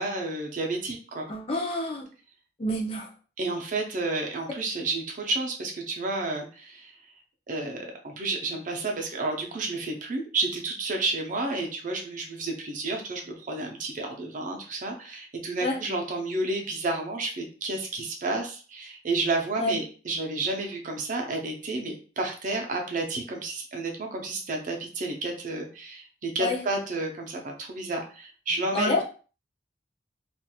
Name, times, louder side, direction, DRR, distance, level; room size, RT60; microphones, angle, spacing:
voice 1, 0.0-1.3 3.4-6.9 7.5-29.0, right 2 dB, 50° right, 2 dB, 0.6 m, -31 dB
voice 2, 1.3-2.1 2.6-3.1 15.6-15.8 19.6-19.8 26.4-26.6 28.7-29.0, left 1 dB, 35° left, 0 dB, 0.5 m, -27 dB
2.8 x 2.4 x 2.3 m, 0.38 s
head